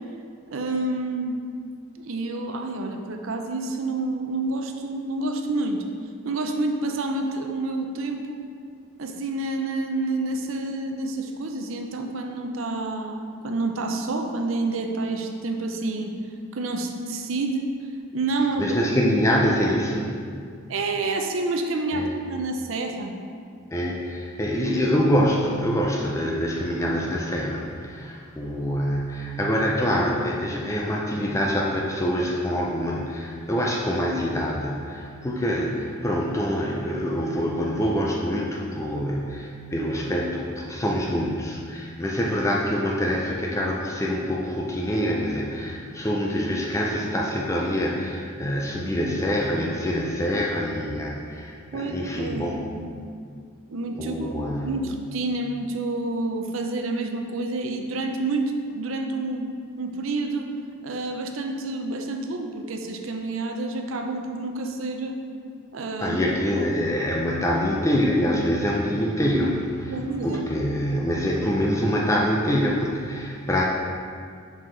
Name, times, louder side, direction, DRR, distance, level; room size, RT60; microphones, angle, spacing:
voice 1, 0.5-1.4 2.0-5.8 6.2-8.4 9.0-16.1 16.5-17.7 18.1-18.8 20.7-23.1 51.7-52.9 53.7-59.5 59.8-60.5 60.8-65.2 65.7-66.2 69.9-70.4, right 2 dB, 80° right, 4 dB, 0.6 m, -28 dB
voice 2, 18.6-20.2 21.9-22.1 23.7-52.6 53.9-54.8 66.0-69.9 70.2-73.6, equal, 15° left, -2 dB, 0.4 m, -25 dB
5.7 x 4.7 x 3.8 m, 2.2 s
head